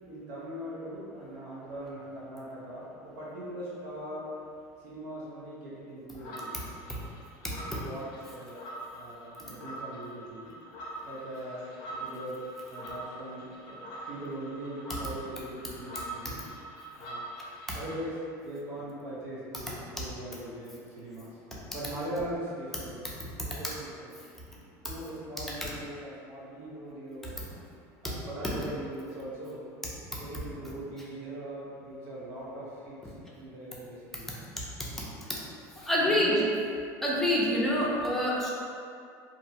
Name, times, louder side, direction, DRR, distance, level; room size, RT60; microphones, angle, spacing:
voice 1, 0.1-4.3 4.8-6.6 7.7-8.6 8.9-10.5 11.0-12.4 12.7-16.4 16.9-17.3 17.7-21.4 21.7-23.1 23.4-24.1 24.8-27.5 28.0-29.7 30.1-34.4 36.0-36.4 37.1-37.3 37.8-38.0, right 1 dB, 80° right, -7 dB, 0.8 m, -40 dB
sound 1, 6.2-18.1, right 1 dB, 60° left, 0.4 m, -43 dB
voice 2, 7.4-7.8 16.2-16.3 17.7-17.8 20.0-20.1 21.5-21.6 23.2-23.5 28.0-28.1 30.1-30.2 34.1-34.2 34.6-35.4 35.8-36.4 37.0-38.5, left 1 dB, 5° left, -6 dB, 0.5 m, -28 dB
2.6 x 2.0 x 2.8 m, 2.4 s
supercardioid pair, 115°, 9 cm